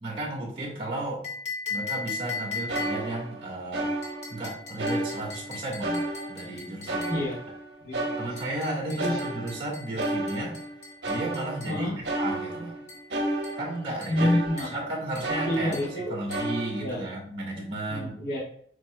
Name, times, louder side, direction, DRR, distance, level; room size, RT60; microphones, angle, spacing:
voice 1, 0.0-1.2 1.7-3.9 4.3-7.2 8.2-10.5 11.0-12.8 13.6-14.4 14.7-15.8 16.1-18.1, right 1 dB, 30° right, -6 dB, 1.7 m, -34 dB
sound 1, 1.2-3.2 4.0-7.3 8.4-11.8 12.9-13.1 13.4-13.7 14.0-14.3 14.6-14.8 15.2-15.4 15.7-16.0 16.3-16.6, left 4 dB, 40° left, 1.3 m, -39 dB
sound 2, 2.3-2.4 2.7-4.4 4.8-5.5 5.8-8.7 9.0-14.9 15.2-16.0 16.3-17.0, right 1 dB, 75° right, 1.1 m, -32 dB
voice 2, 7.8-8.2 8.9-9.2 11.7-12.0 14.1-14.7 15.5-16.1 16.8-17.0 17.9-18.4, left 1 dB, 70° left, -10 dB, 1.4 m, -28 dB
7.4 x 3.1 x 2.2 m, 0.63 s
head